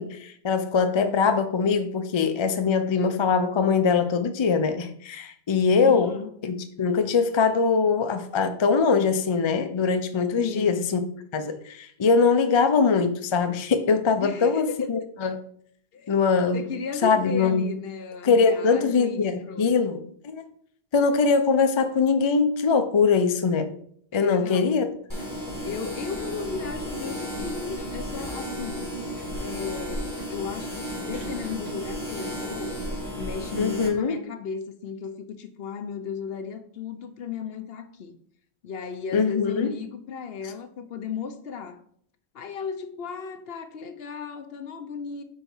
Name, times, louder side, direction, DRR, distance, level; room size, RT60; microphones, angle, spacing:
voice 1, 0.0-6.2 6.4-11.0 11.3-15.3 16.1-16.6 17.0-17.7 18.2-20.5 20.9-23.7 24.1-24.9 33.6-34.1 39.1-39.7, left 5 dB, 40° left, 0.4 m, -22 dB
voice 2, 5.8-6.3 10.4-10.8 14.2-15.1 15.9-16.1 16.5-19.7 24.1-24.9 25.6-28.9 29.4-32.8 33.2-38.2 38.6-41.8 42.3-45.2, left 6 dB, 65° left, 0.9 m, -35 dB
sound 1, 25.1-33.9, equal, 15° left, 1.9 m, -33 dB
4.5 x 4.5 x 5.5 m
omnidirectional pair, 1.1 m